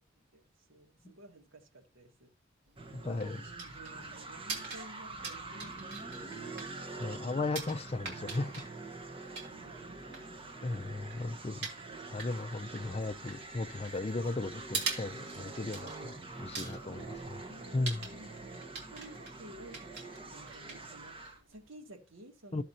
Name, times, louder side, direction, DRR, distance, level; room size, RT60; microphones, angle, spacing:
voice 1, 0.7-2.3 3.1-7.8 9.5-11.2 17.0-18.6 18.9-22.6, right 1 dB, 80° right, 1.8 m, -54 dB
sound 1, 2.7-21.7, right 4 dB, 60° right, 2.8 m, -45 dB
sound 2, 2.8-21.4, right 3 dB, 25° right, 1.3 m, -45 dB
voice 2, 2.9-3.4 7.0-8.6 10.6-11.7 12.1-17.4 17.7-18.1 22.5-22.6, left 2 dB, 30° left, 0.4 m, -36 dB
13.5 x 7.5 x 2.8 m
head